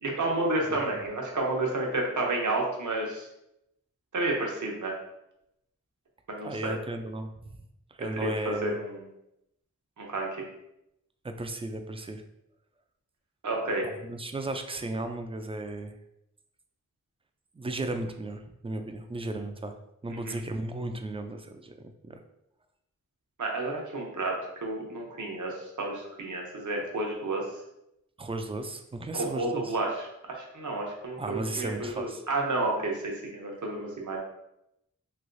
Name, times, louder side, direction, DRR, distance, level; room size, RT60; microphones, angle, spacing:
voice 1, 0.0-3.3 4.1-4.9 6.4-6.8 8.0-9.0 10.0-10.3 13.4-13.9 20.1-20.4 23.4-27.4 29.1-30.1 30.4-34.2, right 2 dB, 75° right, 0 dB, 0.8 m, -31 dB
voice 2, 6.4-7.6 8.0-8.8 11.2-12.2 13.8-16.0 17.5-22.2 28.2-29.8 31.2-32.2, right 2 dB, 20° right, 6 dB, 0.3 m, -35 dB
3.2 x 2.9 x 2.6 m, 0.84 s
wide cardioid pair, 50°, 31 cm